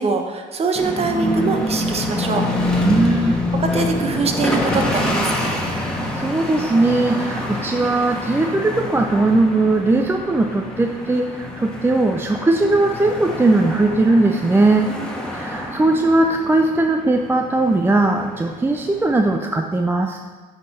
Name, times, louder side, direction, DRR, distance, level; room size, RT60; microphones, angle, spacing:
voice 1, 0.0-2.5 3.5-5.6 14.8-15.0, right 4 dB, 35° right, 4 dB, 1.1 m, -23 dB
sound 1, 0.8-19.4, left 1 dB, 5° left, 1.5 m, -26 dB
voice 2, 2.8-3.5 5.6-14.9 15.3-20.2, right 2 dB, 15° right, 4 dB, 0.5 m, -19 dB
9.2 x 5.6 x 4.2 m, 1.4 s
cardioid pair, 110°, 17 cm